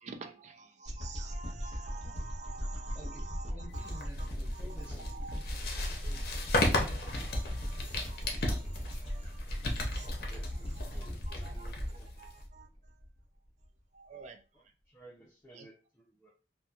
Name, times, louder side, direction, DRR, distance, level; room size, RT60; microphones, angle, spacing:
voice 1, 0.0-3.4 3.7-4.0 5.1-5.4 6.0-9.4 9.9-10.3 11.3-11.7 12.2-12.7 13.9-14.4 15.6-15.7, right 4 dB, 40° right, 0.4 m, -49 dB
sound 1, 0.9-13.2 13.6-13.7, equal, 35° left, 0.9 m, -38 dB
voice 2, 2.9-5.2, equal, 10° right, 0.8 m, -51 dB
sound 2, 3.8-12.4, left 2 dB, 60° left, 0.6 m, -35 dB
voice 3, 10.2-12.3 14.5-16.3, right 2 dB, 15° left, 0.5 m, -56 dB
2.8 x 2.2 x 2.3 m
head